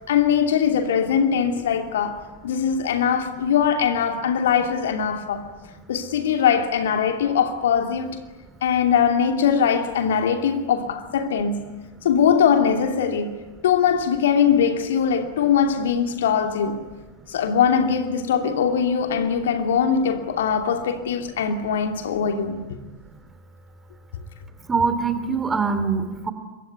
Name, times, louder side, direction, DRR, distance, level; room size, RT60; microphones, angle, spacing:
voice 1, 0.1-5.5 5.9-8.1 8.6-11.7 12.0-16.9 17.3-22.6, left 7 dB, 60° left, 2.8 m, -21 dB
voice 2, 24.7-26.3, right 5 dB, 15° right, 3.0 m, -23 dB
26.5 x 23.5 x 9.5 m
figure-of-eight pair, 90°, 0 cm